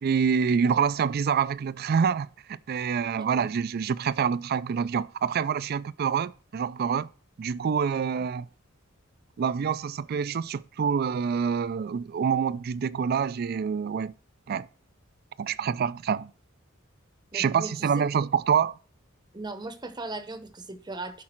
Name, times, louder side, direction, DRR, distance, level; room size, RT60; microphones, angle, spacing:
voice 1, 0.0-7.1 7.4-8.5 9.4-14.1 14.5-14.7 15.4-16.3 17.3-18.8, right 6 dB, 50° right, 0.3 m, -26 dB
voice 2, 17.3-17.9 19.3-21.2, right 2 dB, 20° right, 0.8 m, -38 dB
11.5 x 4.9 x 4.4 m
head